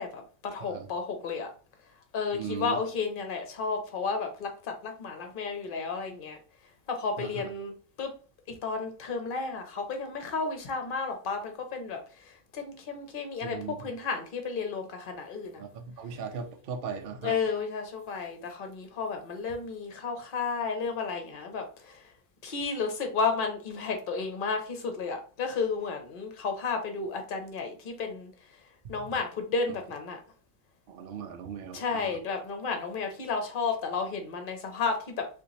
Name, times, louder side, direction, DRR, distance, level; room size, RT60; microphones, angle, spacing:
voice 1, 0.0-1.5 2.1-6.4 6.9-8.1 8.5-12.0 12.5-15.6 17.2-22.0 22.4-28.3 28.9-30.2 31.7-35.3, left 4 dB, 50° left, 5 dB, 0.8 m, -32 dB
voice 2, 2.3-2.8 7.2-7.5 13.4-13.8 15.6-17.4 28.8-29.1 30.9-32.1, right 6 dB, 60° right, 5 dB, 0.7 m, -38 dB
2.9 x 2.5 x 3.9 m, 0.38 s
omnidirectional pair, 1.3 m